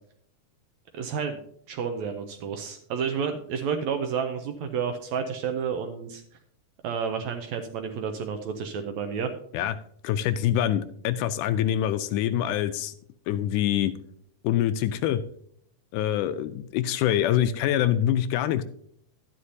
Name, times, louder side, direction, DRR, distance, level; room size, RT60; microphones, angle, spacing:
voice 1, 0.9-1.4 1.7-6.2 6.8-9.3, right 6 dB, 80° right, 6 dB, 1.7 m, -30 dB
voice 2, 10.0-12.9 13.3-13.9 14.4-15.2 15.9-18.6, left 11 dB, 80° left, 12 dB, 1.9 m, -25 dB
11.5 x 9.6 x 2.7 m, 0.65 s
omnidirectional pair, 3.8 m